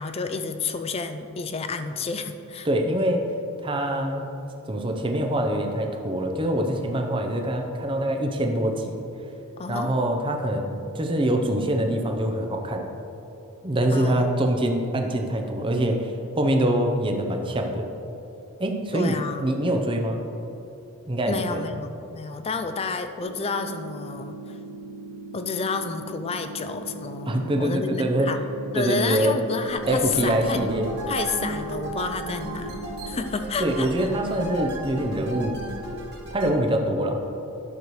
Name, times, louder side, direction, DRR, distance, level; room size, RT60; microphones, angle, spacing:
voice 1, 0.0-2.7 9.6-10.2 13.9-14.4 18.9-19.6 21.3-24.6 25.3-28.4 28.7-30.6 31.1-34.1, left 4 dB, 25° left, 8 dB, 0.3 m, -30 dB
voice 2, 2.6-3.3 3.6-4.3 4.7-9.0 9.7-12.8 13.6-17.9 18.6-20.2 21.1-21.6 27.3-28.3 28.8-29.4 29.9-30.9 33.6-35.6 36.3-37.2, right 1 dB, 25° right, 3 dB, 0.6 m, -24 dB
sound 1, 23.2-33.2, right 3 dB, 75° right, 0.8 m, -40 dB
sound 2, 29.7-36.5, right 1 dB, 50° right, 1.2 m, -35 dB
10.5 x 6.6 x 3.1 m, 2.9 s
head